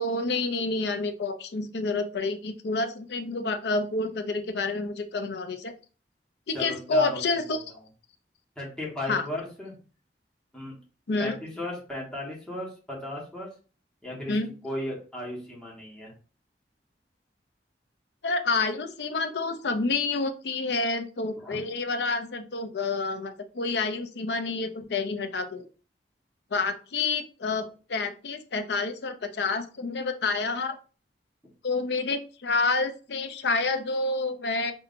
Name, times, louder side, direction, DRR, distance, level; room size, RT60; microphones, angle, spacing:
voice 1, 0.0-5.7 6.5-7.8 9.1-9.3 11.1-11.4 14.3-14.5 18.2-25.6 26.5-30.8 31.6-34.7, left 3 dB, 75° left, 8 dB, 0.6 m, -28 dB
voice 2, 6.5-7.2 7.5-7.6 8.6-9.7 10.5-10.8 11.2-13.5 14.0-14.3 14.6-16.1 21.4-21.6, left 1 dB, 5° left, -5 dB, 1.4 m, -35 dB
5.5 x 2.8 x 2.6 m, 0.37 s
head